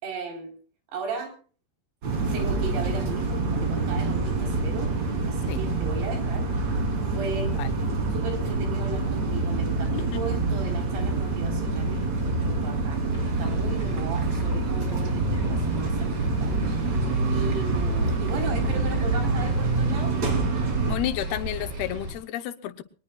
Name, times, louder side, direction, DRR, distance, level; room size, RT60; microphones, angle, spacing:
voice 1, 0.0-0.5 0.9-1.4 2.3-4.9 5.3-6.5 7.1-7.5 8.1-20.2, right 3 dB, 80° right, 4 dB, 6.1 m, -36 dB
sound 1, 2.0-21.0, right 3 dB, 45° right, 4.3 m, -26 dB
voice 2, 7.4-7.7 9.9-10.2 20.9-22.8, left 12 dB, 75° left, 10 dB, 2.8 m, -31 dB
sound 2, 13.1-22.1, equal, 30° right, 3.1 m, -34 dB
23.0 x 19.5 x 2.4 m, 0.40 s
omnidirectional pair, 4.7 m